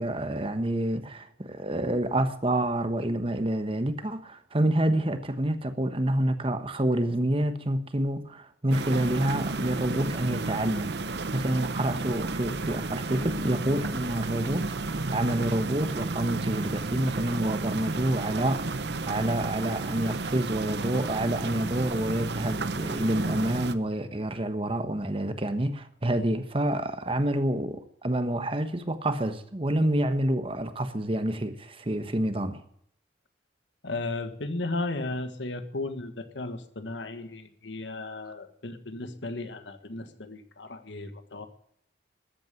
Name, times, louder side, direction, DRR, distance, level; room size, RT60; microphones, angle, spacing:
voice 1, 0.0-10.9 11.3-18.6 19.1-32.6, right 1 dB, 30° right, 1.2 m, -28 dB
sound 1, 8.7-23.8, right 3 dB, 65° right, 0.8 m, -32 dB
voice 2, 33.8-41.5, left 2 dB, 80° left, 1.6 m, -35 dB
14.0 x 8.9 x 8.9 m
head